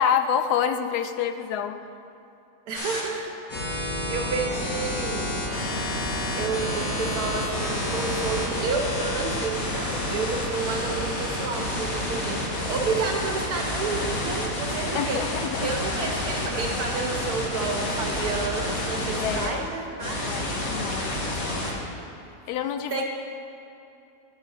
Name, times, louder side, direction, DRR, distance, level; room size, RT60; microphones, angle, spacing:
voice 1, 0.0-1.8 14.9-15.8 16.1-16.2 19.1-19.7 20.2-21.8 22.5-23.1, left 8 dB, 90° left, 8 dB, 1.1 m, -28 dB
sound 1, 2.7-3.0 3.5-19.5 20.0-21.7, left 1 dB, 65° left, 1.7 m, -29 dB
voice 2, 2.7-3.3 3.6-3.8 4.1-5.4 6.3-15.2 15.6-20.2 22.9-23.1, right 4 dB, 80° right, 0 dB, 1.5 m, -30 dB
10.0 x 4.8 x 6.4 m, 2.8 s
omnidirectional pair, 1.6 m